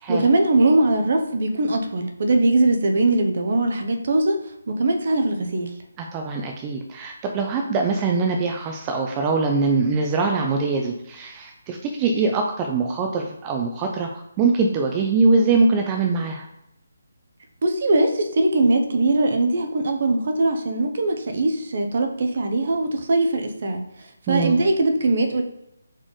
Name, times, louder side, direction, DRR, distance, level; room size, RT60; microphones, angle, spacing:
voice 1, 0.1-4.4 4.7-5.7 17.6-23.8 24.3-25.4, right 2 dB, 45° right, 4 dB, 0.7 m, -21 dB
voice 2, 6.1-16.5 24.3-24.6, right 4 dB, 15° right, 2 dB, 0.4 m, -22 dB
4.1 x 3.9 x 3.1 m, 0.83 s
hypercardioid pair, 170°, 0 cm